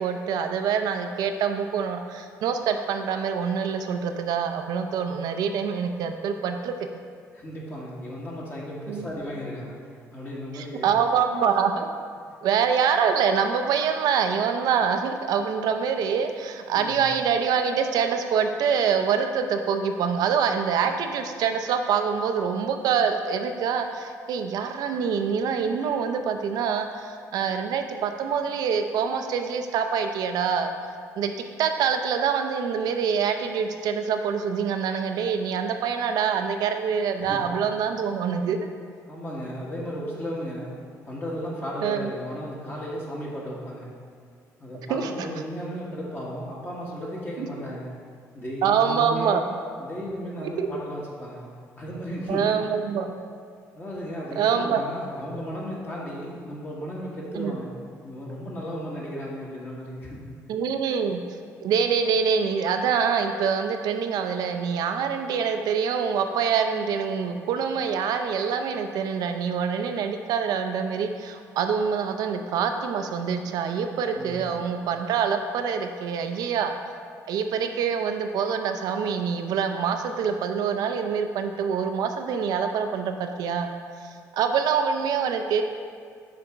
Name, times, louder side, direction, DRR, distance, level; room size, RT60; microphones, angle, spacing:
voice 1, 0.0-6.9 8.9-9.1 10.5-11.9 12.4-30.7 31.2-31.3 31.6-38.6 41.8-42.1 44.9-45.3 47.4-47.5 48.6-49.4 50.4-50.7 52.3-53.2 54.4-54.8 57.3-57.6 60.5-61.2 61.6-76.7 77.3-83.7 84.0-85.6, right 6 dB, 80° right, 6 dB, 0.5 m, -25 dB
voice 2, 7.3-9.7 10.1-10.9 16.7-17.1 37.2-37.5 39.1-40.7 41.0-43.9 44.6-47.9 48.3-49.4 49.8-51.5 51.8-52.4 53.7-57.7 58.0-60.2 74.1-74.6, equal, 30° left, -5 dB, 1.4 m, -35 dB
6.7 x 3.4 x 5.0 m, 2.1 s
cardioid pair, 80°, 7 cm